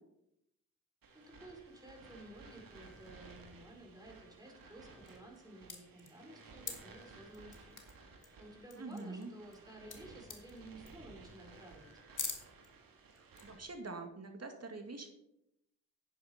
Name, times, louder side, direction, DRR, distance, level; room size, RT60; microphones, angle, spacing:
sound 1, 1.0-13.6, right 3 dB, 75° right, 2.1 m, -57 dB
voice 1, 1.1-11.9, right 1 dB, 10° right, 0 dB, 4.7 m, -54 dB
sound 2, 5.0-5.4 5.7-6.7 7.3-7.9 8.2-8.3 8.6-9.6 9.9-10.0 10.2-10.6 10.8-11.1 11.5-11.6 12.1-12.7 13.2-13.4, left 5 dB, 60° left, 2.2 m, -44 dB
voice 2, 8.8-9.3 13.1-15.1, right 3 dB, 45° right, 5 dB, 2.4 m, -45 dB
10.0 x 9.3 x 4.5 m, 0.81 s
supercardioid pair, 45°, 35 cm